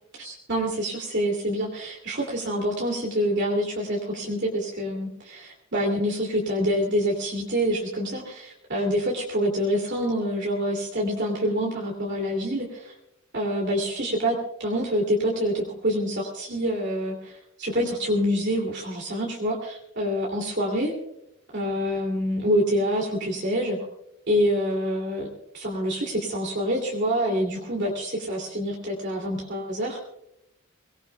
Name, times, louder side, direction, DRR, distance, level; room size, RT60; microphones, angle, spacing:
voice 1, 0.2-12.9 13.3-20.9 21.5-23.8 24.3-25.3 25.5-30.0, equal, 55° right, -1 dB, 2.7 m, -26 dB
24.0 x 19.0 x 2.3 m, 0.81 s
head